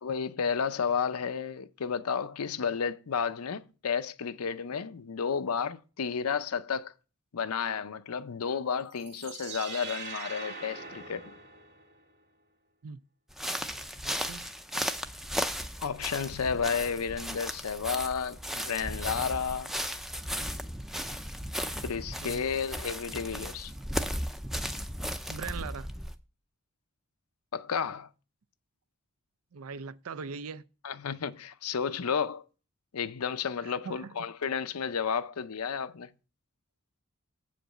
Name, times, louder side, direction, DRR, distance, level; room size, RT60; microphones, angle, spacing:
voice 1, 0.0-6.9 7.3-11.3 15.8-19.7 21.8-23.7 27.5-28.1 30.8-32.4 32.9-36.1, left 6 dB, 85° left, 0.6 m, -32 dB
sound 1, 8.9-12.0, right 4 dB, 50° right, 2.4 m, -42 dB
sound 2, 13.3-26.2, equal, ahead, 0.4 m, -35 dB
voice 2, 14.0-14.5 22.2-22.4 25.3-25.9 29.5-30.6 33.6-34.1, right 5 dB, 75° right, 0.5 m, -41 dB
7.9 x 5.1 x 6.4 m
head